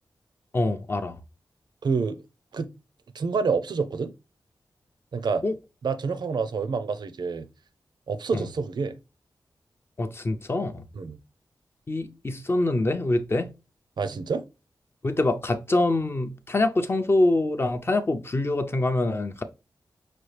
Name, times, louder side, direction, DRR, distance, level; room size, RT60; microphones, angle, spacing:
voice 1, 0.5-1.2 5.4-5.5 8.3-8.5 10.0-10.8 11.9-13.5 15.0-19.4, left 2 dB, 30° left, 0.5 m, -25 dB
voice 2, 1.8-2.2 2.5-2.7 3.1-4.1 5.1-5.4 5.8-7.5 8.1-9.0 11.0-11.2 14.0-14.5, right 5 dB, 70° right, 0.5 m, -27 dB
5.9 x 2.3 x 3.2 m
wide cardioid pair, 115°, 8 cm